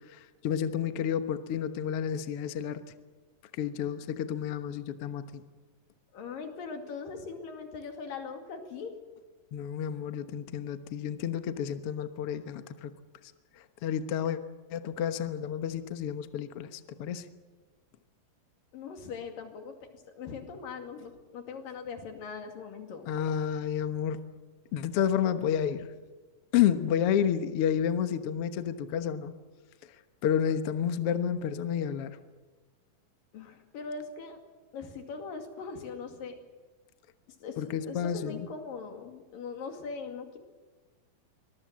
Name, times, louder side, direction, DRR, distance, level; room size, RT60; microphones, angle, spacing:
voice 1, 0.1-2.8 3.6-5.4 9.5-12.9 13.8-14.4 14.7-17.2 23.0-24.2 24.7-25.9 26.5-29.3 30.2-32.2 37.6-38.5, left 9 dB, 60° left, 9 dB, 1.7 m, -30 dB
voice 2, 6.1-8.9 18.7-23.1 33.3-34.4 34.7-36.4 37.4-40.4, left 5 dB, 85° left, 5 dB, 4.0 m, -41 dB
24.5 x 21.0 x 7.6 m, 1.3 s
omnidirectional pair, 3.9 m